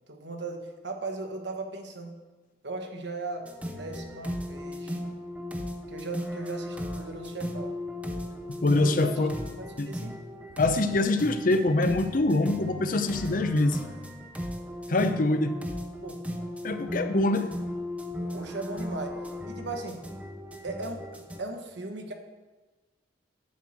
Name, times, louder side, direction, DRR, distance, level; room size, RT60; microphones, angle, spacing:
voice 1, 0.1-2.2 2.6-5.0 5.9-7.8 8.8-9.2 9.6-10.1 16.0-16.2 18.3-20.0 20.6-22.1, right 2 dB, 65° right, 4 dB, 1.2 m, -37 dB
sound 1, 3.4-21.4, left 1 dB, 5° right, 0.7 m, -37 dB
voice 2, 8.6-9.3 9.8-10.1 10.6-13.8 14.9-15.6 16.6-17.5, left 2 dB, 50° left, 9 dB, 0.6 m, -24 dB
10.5 x 4.5 x 7.4 m, 1.2 s
head